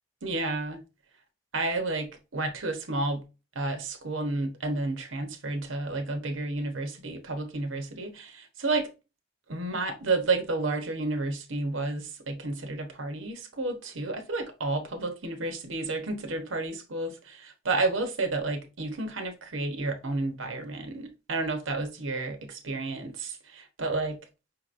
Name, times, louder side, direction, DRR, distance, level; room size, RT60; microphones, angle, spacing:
voice 1, 0.2-0.8 1.5-2.1 2.3-3.2 3.5-8.9 9.5-24.2, right 3 dB, 80° right, 0.9 m, -31 dB
5.3 x 2.9 x 2.5 m
head